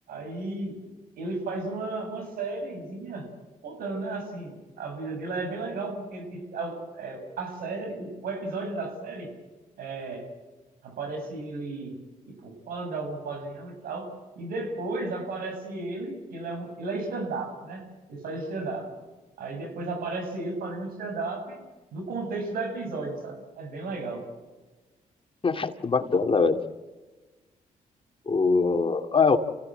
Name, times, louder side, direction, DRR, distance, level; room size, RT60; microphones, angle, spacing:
voice 1, 0.1-0.8 1.2-3.3 3.6-9.3 9.8-10.2 10.8-11.9 12.3-18.9 19.4-21.6 21.9-24.2, right 3 dB, 85° right, 5 dB, 7.2 m, -34 dB
voice 2, 25.4-26.6 28.3-29.4, left 4 dB, 35° left, 7 dB, 2.3 m, -22 dB
29.0 x 17.0 x 9.0 m, 1.2 s
cardioid pair, 70°, 15 cm